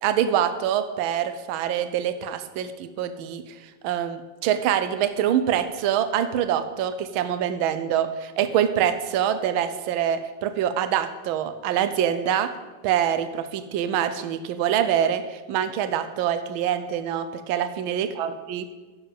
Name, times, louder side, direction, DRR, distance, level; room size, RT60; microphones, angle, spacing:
voice 1, 0.0-3.4 3.8-12.5 12.8-18.6, right 9 dB, 75° right, 11 dB, 1.4 m, -25 dB
10.0 x 7.1 x 5.1 m, 1.2 s
omnidirectional pair, 2.4 m